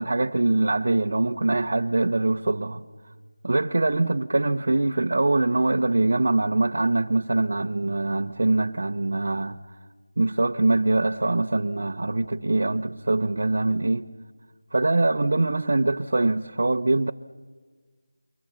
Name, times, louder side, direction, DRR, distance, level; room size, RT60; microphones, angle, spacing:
voice 1, 0.0-2.8 3.4-9.6 10.2-14.1 14.7-17.1, right 2 dB, 50° right, 0.7 m, -23 dB
29.0 x 23.0 x 7.4 m
figure-of-eight pair, 180°, 0 cm